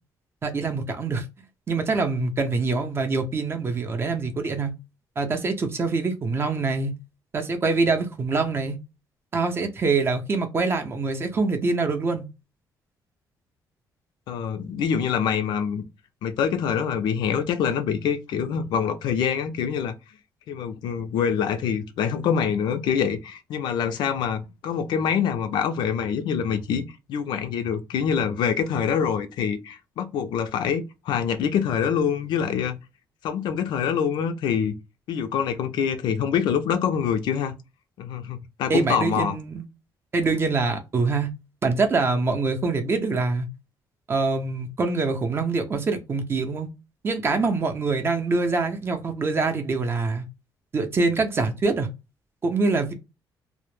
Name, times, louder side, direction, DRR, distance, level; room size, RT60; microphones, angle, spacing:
voice 1, 0.4-1.2 1.7-4.7 5.2-6.9 7.3-8.8 9.3-12.3 38.7-39.6 40.1-41.3 41.6-43.5 44.1-46.7 47.0-50.2 50.7-51.9 52.4-52.9, right 3 dB, 30° right, 0.5 m, -24 dB
voice 2, 14.3-15.8 16.2-19.9 20.5-26.8 27.1-32.8 33.2-34.7 35.1-37.5 38.0-39.4, left 7 dB, 80° left, 0.4 m, -25 dB
2.0 x 2.0 x 3.0 m
cardioid pair, 145°, 8 cm